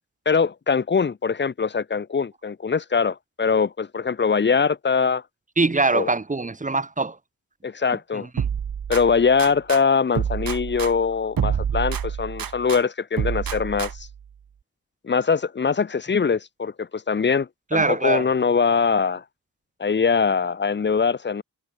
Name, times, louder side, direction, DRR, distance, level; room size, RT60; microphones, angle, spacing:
voice 1, 0.3-5.2 5.9-6.1 7.6-8.3 8.9-14.1 15.0-19.2 19.8-21.4, left 5 dB, 35° left, 0.5 m, -22 dB
voice 2, 5.6-7.2 8.1-8.5 17.7-18.3, right 3 dB, 20° right, 1.1 m, -23 dB
sound 1, 8.4-9.8 10.1-12.8 13.2-14.2, right 8 dB, 80° right, 1.4 m, -28 dB
wide cardioid pair, 95°, 34 cm